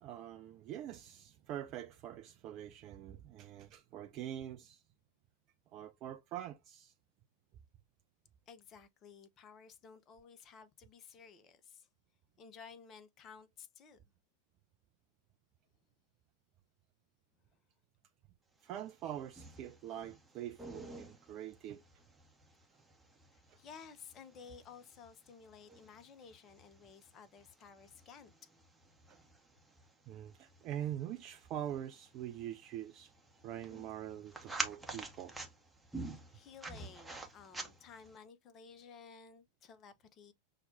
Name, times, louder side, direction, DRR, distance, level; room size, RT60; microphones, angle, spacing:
voice 1, 0.0-4.8 5.7-6.9 18.6-21.8 30.1-33.1 33.4-35.3, right 11 dB, 35° right, 0.3 m, -44 dB
voice 2, 8.5-11.9 12.4-14.0 23.3-28.5 36.3-40.3, left 6 dB, 30° left, 0.6 m, -55 dB
sound 1, 18.7-38.2, right 2 dB, 5° right, 0.8 m, -49 dB
5.7 x 2.2 x 2.6 m
figure-of-eight pair, 90°, 0 cm